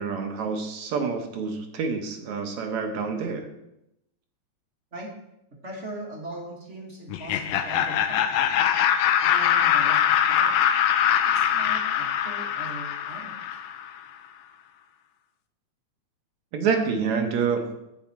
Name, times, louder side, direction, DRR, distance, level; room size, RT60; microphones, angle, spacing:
voice 1, 0.0-3.5 16.5-17.7, right 5 dB, 75° right, 4 dB, 2.4 m, -27 dB
voice 2, 5.6-8.3 9.2-10.5 11.3-13.4, right 2 dB, 30° right, -2 dB, 1.8 m, -40 dB
Laughter, 7.1-13.9, left 9 dB, 75° left, 1.5 m, -23 dB
15.5 x 5.8 x 4.4 m, 0.83 s
omnidirectional pair, 3.3 m